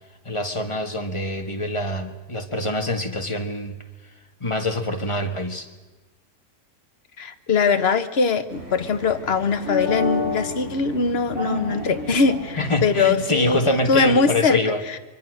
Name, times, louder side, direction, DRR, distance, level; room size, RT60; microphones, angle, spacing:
voice 1, 0.2-3.8 4.4-5.7 12.6-14.8, left 1 dB, 20° left, 4 dB, 1.7 m, -25 dB
voice 2, 7.2-14.6 14.9-15.0, left 4 dB, 45° left, 9 dB, 1.3 m, -21 dB
sound 1, 8.5-14.1, left 1 dB, 65° right, 7.1 m, -32 dB
24.0 x 24.0 x 6.5 m, 1.2 s
omnidirectional pair, 1.6 m